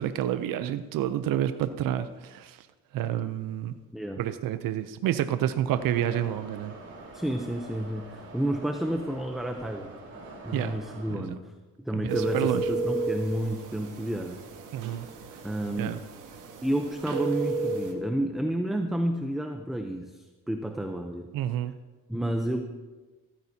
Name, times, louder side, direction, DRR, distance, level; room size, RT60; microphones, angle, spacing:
voice 1, 0.0-2.7 2.9-3.7 4.2-6.7 10.5-10.7 11.1-11.4 11.9-12.7 14.7-15.1 15.8-16.0 21.3-21.7, right 11 dB, 85° right, 11 dB, 0.6 m, -29 dB
Subway metro underground, 5.7-11.2, right 2 dB, 45° right, 4.2 m, -45 dB
voice 2, 7.1-9.9 10.4-11.4 11.8-14.4 15.4-16.0 16.6-21.3 22.1-22.6, right 1 dB, ahead, 4 dB, 0.7 m, -30 dB
sound 1, 12.1-17.9, right 3 dB, 65° right, 1.6 m, -33 dB
15.5 x 14.0 x 2.8 m, 1.3 s
cardioid pair, 120°, 33 cm